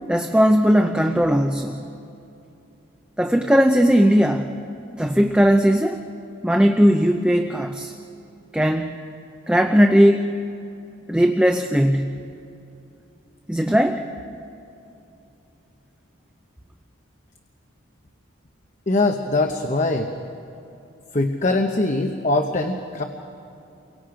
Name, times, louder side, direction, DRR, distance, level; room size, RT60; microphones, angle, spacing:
voice 1, 0.1-1.8 3.2-4.5 5.0-6.0 6.4-7.9 8.5-8.9 9.5-10.3 11.1-12.1 13.5-14.0, equal, 5° right, 4 dB, 0.6 m, -18 dB
voice 2, 18.9-20.1 21.1-23.0, left 2 dB, 35° left, 4 dB, 0.9 m, -22 dB
29.5 x 23.5 x 5.1 m, 2.8 s
head